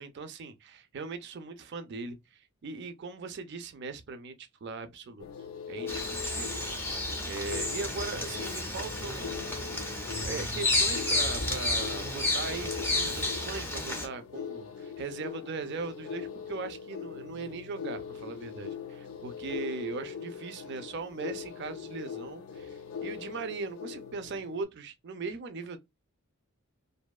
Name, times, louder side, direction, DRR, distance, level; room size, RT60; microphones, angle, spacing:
voice 1, 0.0-5.3 5.7-6.6 7.2-9.4 10.2-25.8, right 4 dB, 50° right, 0.4 m, -39 dB
sound 1, 5.2-24.6, left 7 dB, 65° left, 0.4 m, -41 dB
Bird vocalization bird call bird song, 5.9-14.1, left 2 dB, 10° left, 0.5 m, -31 dB
2.6 x 2.2 x 2.2 m
head